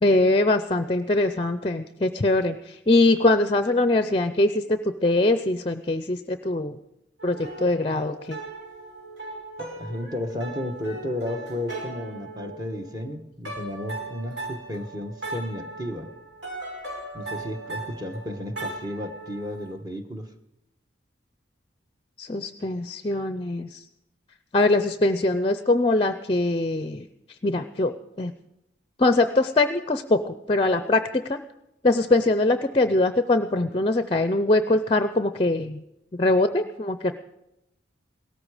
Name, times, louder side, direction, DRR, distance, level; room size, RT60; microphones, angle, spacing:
voice 1, 0.0-6.8 7.2-8.4 22.2-23.8 24.5-27.1 27.4-28.3 29.0-31.4 31.8-35.8 36.1-37.1, left 2 dB, 30° left, 10 dB, 0.5 m, -22 dB
sound 1, 7.2-13.1 13.4-19.7, right 2 dB, 75° right, 5.2 m, -38 dB
voice 2, 9.6-16.1 17.1-20.3, left 1 dB, 20° right, 6 dB, 1.2 m, -33 dB
17.5 x 14.0 x 5.0 m, 0.87 s
head